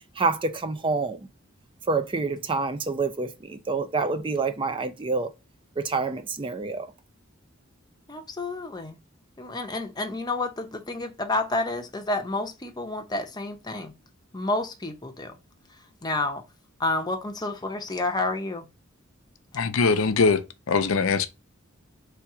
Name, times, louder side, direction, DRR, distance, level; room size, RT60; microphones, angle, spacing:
voice 1, 0.2-1.2 1.9-5.3 5.8-6.9, right 4 dB, 25° right, 0.4 m, -27 dB
voice 2, 8.1-9.0 9.4-13.9 14.3-15.3 16.0-16.4 16.8-18.7, left 2 dB, 20° left, 0.7 m, -29 dB
voice 3, 19.5-21.3, left 4 dB, 80° left, 0.5 m, -22 dB
3.4 x 2.9 x 4.7 m
head